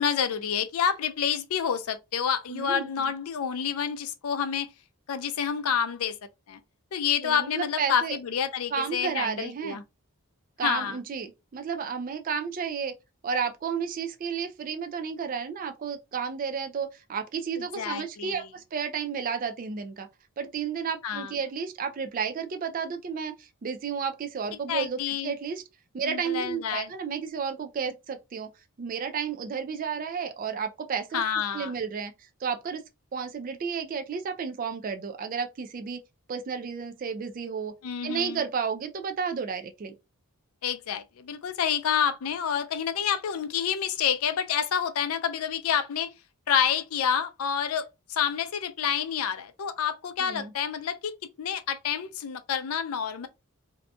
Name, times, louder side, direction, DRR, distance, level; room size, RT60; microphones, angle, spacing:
voice 1, 0.0-4.7 5.1-6.2 6.5-6.6 6.9-9.8 10.6-11.0 17.6-18.4 21.0-21.3 24.7-25.3 26.0-26.9 31.1-31.7 37.8-38.4 40.6-46.1 46.5-51.1 51.4-53.3, left 8 dB, 75° left, 0.4 m, -28 dB
voice 2, 2.5-3.1 7.2-8.2 8.7-9.8 10.6-12.9 13.2-20.1 20.4-25.6 25.9-28.5 28.8-31.2 31.5-32.8 33.1-36.0 36.3-37.7 38.0-39.9 50.2-50.5, right 6 dB, 40° right, 0.3 m, -32 dB
2.6 x 2.2 x 2.6 m
head